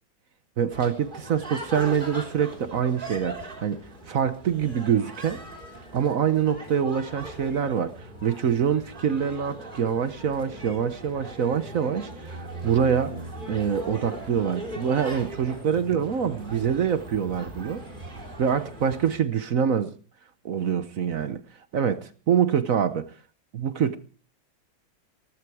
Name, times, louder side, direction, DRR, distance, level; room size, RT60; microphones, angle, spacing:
voice 1, 0.6-3.8 4.1-5.4 5.9-13.1 13.5-17.8 18.4-19.9 20.4-21.4 21.7-23.1 23.5-24.0, right 7 dB, 55° right, 1.1 m, -25 dB
sound 1, 0.7-19.2, right 1 dB, 25° right, 3.6 m, -40 dB
18.0 x 15.0 x 4.8 m
omnidirectional pair, 2.1 m